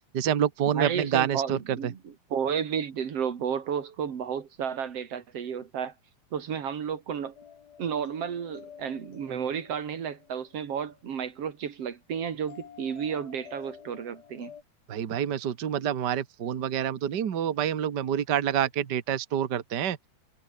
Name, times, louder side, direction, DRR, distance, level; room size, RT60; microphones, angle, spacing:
voice 1, 0.1-1.9 14.9-20.0, right 9 dB, 70° right, 1.0 m, -27 dB
voice 2, 0.7-5.9 6.3-7.4 7.8-14.5, right 7 dB, 45° right, 2.8 m, -32 dB
sound 1, 7.4-11.3 12.5-14.6, left 8 dB, 90° left, 4.9 m, -50 dB
omnidirectional pair, 4.1 m